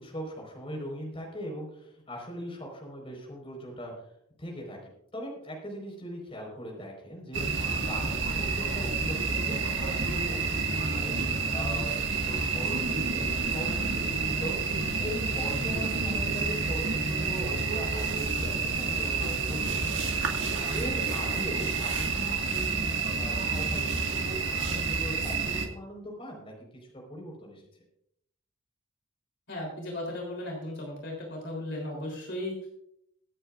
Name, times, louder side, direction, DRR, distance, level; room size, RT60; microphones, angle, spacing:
voice 1, 0.0-4.1 4.4-22.8 23.1-27.7, equal, 25° left, -1 dB, 4.6 m, -40 dB
sound 1, 7.3-25.7, right 4 dB, 60° right, 1.8 m, -29 dB
voice 2, 29.5-32.7, left 1 dB, 60° left, -1 dB, 3.5 m, -36 dB
24.5 x 8.9 x 2.5 m, 0.73 s
head